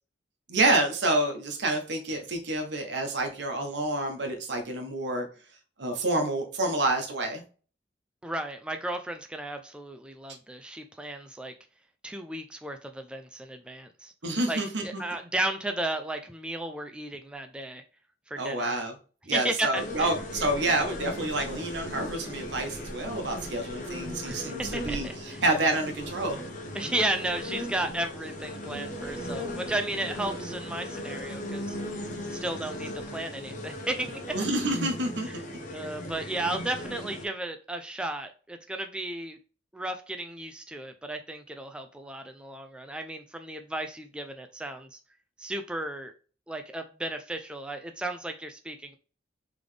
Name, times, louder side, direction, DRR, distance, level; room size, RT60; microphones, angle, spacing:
voice 1, 0.5-5.3 5.8-7.4 14.2-15.0 18.4-18.9 19.3-26.4 34.3-35.3, right 2 dB, 75° right, 4 dB, 1.0 m, -28 dB
voice 2, 8.2-11.5 12.0-14.1 14.5-17.8 18.3-18.7 19.3-20.1 24.2-25.4 26.7-34.4 34.7-34.8 35.3-35.4 35.7-39.4 39.7-45.0 45.4-46.1 46.5-49.0, right 1 dB, 5° right, 6 dB, 0.3 m, -34 dB
sound 1, 19.7-37.2, left 1 dB, 45° left, 0.8 m, -37 dB
3.9 x 3.4 x 3.2 m, 0.38 s
head